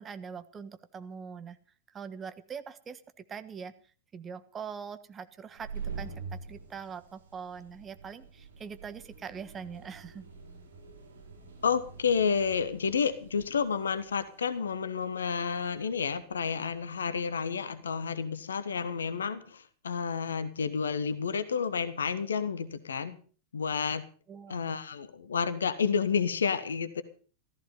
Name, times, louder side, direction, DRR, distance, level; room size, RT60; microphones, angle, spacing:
voice 1, 0.0-1.6 1.9-3.7 4.1-10.3 24.3-24.6, right 6 dB, 20° right, 12 dB, 1.3 m, -43 dB
sound 1, 5.4-15.9, right 5 dB, 65° right, 6.8 m, -46 dB
voice 2, 11.6-23.2 23.5-24.1 24.5-27.0, left 6 dB, 70° left, 13 dB, 1.2 m, -30 dB
14.5 x 14.5 x 5.4 m, 0.41 s
figure-of-eight pair, 90°, 0 cm